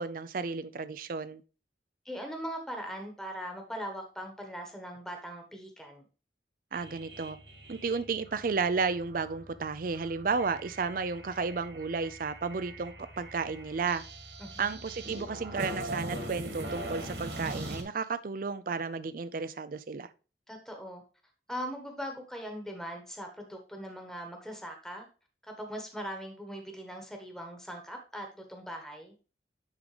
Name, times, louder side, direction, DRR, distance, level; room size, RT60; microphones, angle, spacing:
voice 1, 0.0-1.4 6.7-7.4 7.7-14.0 14.6-20.1, right 4 dB, 50° right, 0.5 m, -33 dB
voice 2, 2.0-6.1 14.4-14.8 20.5-21.0 21.5-25.1 25.6-29.1, equal, 5° left, 1.3 m, -40 dB
sound 1, 6.7-17.8, right 1 dB, 80° right, 2.2 m, -42 dB
10.5 x 3.7 x 3.3 m
head